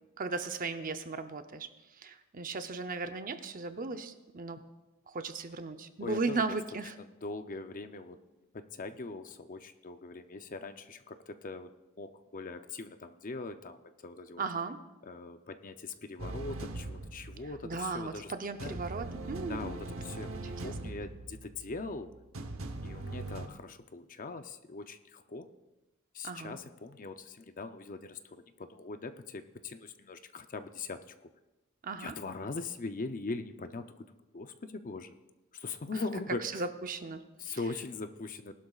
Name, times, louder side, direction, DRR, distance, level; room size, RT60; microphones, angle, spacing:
voice 1, 0.2-1.7 2.0-4.6 5.1-7.0 14.4-14.8 17.6-19.7 20.4-20.9 26.2-26.6 31.8-32.1 35.9-36.0 36.4-37.6, right 4 dB, 40° right, 8 dB, 0.7 m, -37 dB
voice 2, 6.0-6.6 7.0-8.2 8.5-11.7 12.0-14.4 15.0-18.3 18.6-18.8 19.5-22.1 22.8-25.5 26.1-31.3 32.0-35.2 35.5-36.6 37.4-38.5, left 3 dB, 40° left, 9 dB, 0.6 m, -41 dB
sound 1, 16.2-18.3 18.6-23.5, right 2 dB, 65° right, 1.0 m, -41 dB
19.0 x 12.0 x 2.4 m, 1.1 s
head